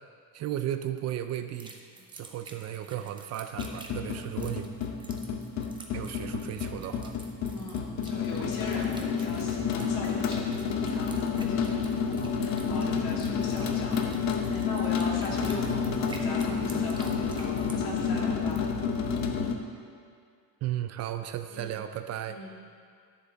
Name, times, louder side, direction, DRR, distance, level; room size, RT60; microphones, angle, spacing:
voice 1, 0.3-1.8 2.1-4.7 5.9-7.2 20.6-22.4, right 11 dB, 45° right, 9 dB, 0.4 m, -35 dB
sound 1, 1.5-17.8, right 2 dB, 15° right, 0.7 m, -50 dB
sound 2, 3.5-19.5, left 6 dB, 50° left, 0.8 m, -30 dB
voice 2, 7.5-18.7 21.5-21.8 22.3-22.5, left 2 dB, 65° left, -3 dB, 2.0 m, -40 dB
10.5 x 7.1 x 3.9 m, 2.3 s
cardioid pair, 155°, 36 cm